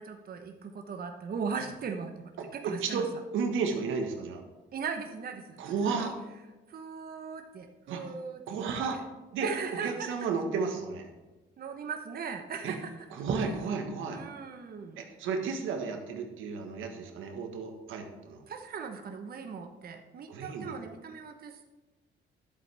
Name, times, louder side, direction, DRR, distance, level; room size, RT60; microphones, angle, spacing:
voice 1, 0.0-3.0 4.7-6.1 6.7-9.0 9.4-10.1 11.6-13.1 14.1-15.1 18.5-21.6, right 5 dB, 50° right, 5 dB, 1.0 m, -39 dB
voice 2, 2.4-4.4 5.6-6.2 7.9-8.1 8.5-9.0 9.3-9.5 9.8-11.1 12.6-12.8 13.1-14.2 15.0-18.4 20.3-20.7, right 5 dB, 90° right, 4 dB, 1.4 m, -33 dB
11.0 x 7.7 x 3.4 m, 1.2 s
cardioid pair, 90°, 20 cm